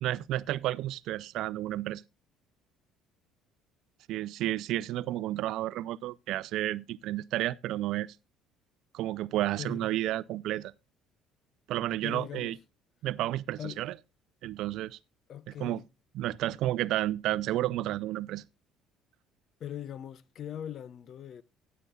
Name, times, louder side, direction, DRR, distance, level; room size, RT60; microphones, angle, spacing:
voice 1, 0.0-2.0 4.1-8.1 8.9-10.7 11.7-12.6 13.0-13.9 14.4-15.0 15.6-15.8 16.1-18.4, right 14 dB, 70° right, 0.4 m, -31 dB
voice 2, 9.6-10.0 12.0-12.6 13.6-13.9 15.3-15.9 19.6-21.4, left 10 dB, 55° left, 0.6 m, -41 dB
15.0 x 8.3 x 2.3 m
supercardioid pair, 75°, 0 cm